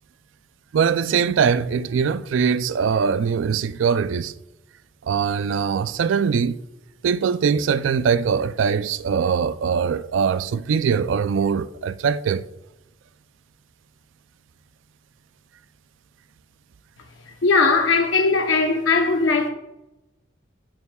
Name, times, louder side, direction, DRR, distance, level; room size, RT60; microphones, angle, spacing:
voice 1, 0.7-4.3 5.1-6.6 7.0-12.4, right 6 dB, 85° right, 0.3 m, -22 dB
voice 2, 17.2-19.5, left 4 dB, 90° left, 0.7 m, -19 dB
9.1 x 8.3 x 2.3 m
head